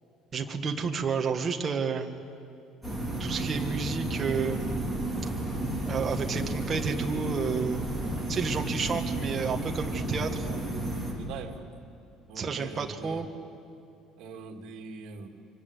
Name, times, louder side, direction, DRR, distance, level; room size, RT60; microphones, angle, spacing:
voice 1, 0.3-2.2 3.2-4.8 5.8-7.8 8.3-10.5 12.4-13.3, right 5 dB, 25° right, 5 dB, 1.6 m, -31 dB
sound 1, 2.8-11.1, right 1 dB, ahead, 3.9 m, -32 dB
voice 2, 10.4-10.7 11.1-11.7 12.3-13.3 14.2-15.3, right 4 dB, 60° right, 3 dB, 2.5 m, -42 dB
26.0 x 25.0 x 8.3 m, 2.5 s
cardioid pair, 175°, 0 cm